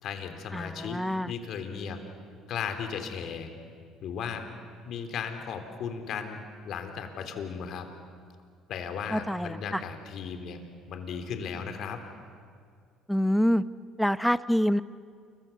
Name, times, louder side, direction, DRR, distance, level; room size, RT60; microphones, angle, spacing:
voice 1, 0.0-1.0 1.3-2.0 2.5-3.5 4.0-4.4 4.9-7.9 8.7-10.6 10.9-12.0, left 6 dB, 60° left, 6 dB, 3.4 m, -36 dB
voice 2, 0.5-1.3 9.1-9.8 13.1-13.6 14.0-14.8, equal, ahead, 15 dB, 0.9 m, -26 dB
28.5 x 23.0 x 7.1 m, 2.1 s
supercardioid pair, 75°, 0 cm